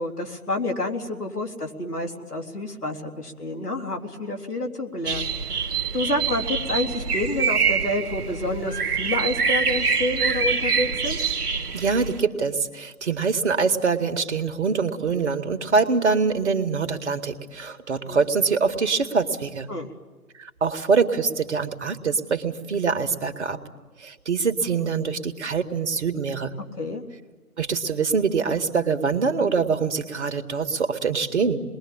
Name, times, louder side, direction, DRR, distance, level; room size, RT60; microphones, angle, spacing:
voice 1, 0.0-11.2 17.9-18.2 19.7-19.9 24.8-24.9 26.8-27.0, left 1 dB, 85° left, 4 dB, 3.8 m, -29 dB
sound 1, 5.0-12.2, right 5 dB, 80° right, 1.3 m, -25 dB
voice 2, 11.7-19.7 20.3-23.6 24.0-26.5 27.6-31.6, right 5 dB, 50° right, 6 dB, 2.0 m, -24 dB
28.5 x 21.5 x 8.7 m, 1.3 s
figure-of-eight pair, 150°, 45 cm